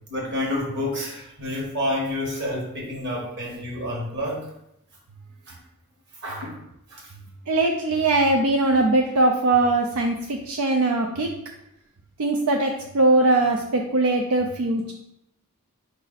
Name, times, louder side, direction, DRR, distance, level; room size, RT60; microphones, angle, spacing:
voice 1, 0.1-4.5 5.5-5.6 6.2-6.6 6.9-7.0, left 1 dB, 55° right, -1 dB, 1.3 m, -29 dB
voice 2, 7.5-11.3 12.2-14.9, right 2 dB, 85° right, 2 dB, 0.4 m, -21 dB
5.0 x 2.6 x 3.9 m, 0.80 s
head